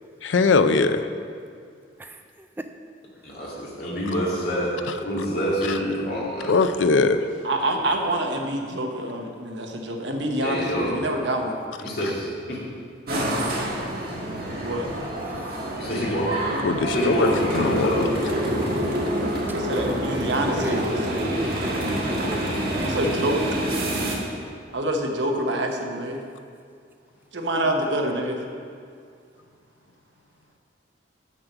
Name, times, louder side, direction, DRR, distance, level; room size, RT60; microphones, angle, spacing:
voice 1, 0.2-1.1 6.5-7.2 16.6-17.9, left 4 dB, 85° left, 10 dB, 0.5 m, -20 dB
voice 2, 3.2-6.6 7.7-7.8 10.4-11.0 11.8-12.6 15.8-16.3 16.8-18.1, equal, 55° left, -5 dB, 2.2 m, -27 dB
voice 3, 7.4-11.6 14.6-14.9 19.5-21.0 22.8-23.4 24.7-26.2 27.3-28.4, right 1 dB, 70° right, 2 dB, 1.0 m, -26 dB
sound 1, 13.1-24.2, right 1 dB, 55° right, 1.5 m, -27 dB
voice 4, 19.7-23.3 27.6-27.8, right 1 dB, 10° right, 6 dB, 0.4 m, -33 dB
7.3 x 6.7 x 6.0 m, 2.2 s
head